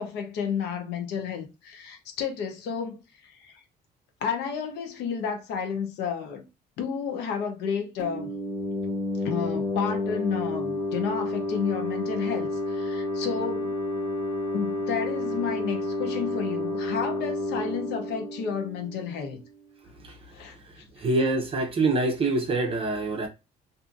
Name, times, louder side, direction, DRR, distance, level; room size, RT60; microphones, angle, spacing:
voice 1, 0.0-3.6 4.2-6.4 6.8-8.3 9.2-13.7 14.5-19.4 20.3-21.1, left 7 dB, 80° left, 0.8 m, -31 dB
sound 1, 8.0-19.4, left 1 dB, 25° left, 0.8 m, -30 dB
voice 2, 21.0-23.3, right 2 dB, 35° right, 0.6 m, -25 dB
2.6 x 2.5 x 2.4 m
cardioid pair, 110°, 17 cm